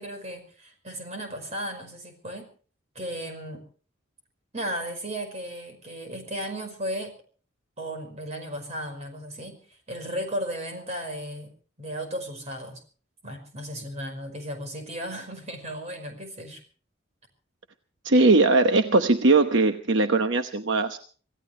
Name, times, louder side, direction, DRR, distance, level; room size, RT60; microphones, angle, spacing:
voice 1, 0.0-2.5 3.0-3.6 4.5-7.2 7.8-12.8 13.2-16.6, equal, 35° right, 5 dB, 5.2 m, -35 dB
voice 2, 18.0-21.0, right 3 dB, 65° right, 7 dB, 1.0 m, -20 dB
26.5 x 16.5 x 3.3 m, 0.41 s
head